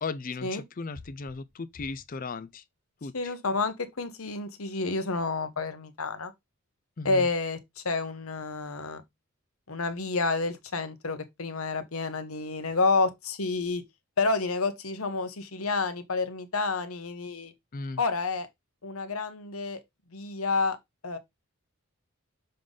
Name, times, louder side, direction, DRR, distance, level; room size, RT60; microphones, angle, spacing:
voice 1, 0.0-2.6 3.0-3.3 7.0-7.3 17.7-18.0, left 4 dB, 40° left, 0.4 m, -36 dB
voice 2, 3.1-6.3 7.0-9.0 9.7-13.8 14.2-17.5 18.0-18.5 18.8-19.8 20.1-20.8 21.0-21.2, left 3 dB, 80° left, 1.1 m, -29 dB
6.7 x 3.7 x 3.8 m
head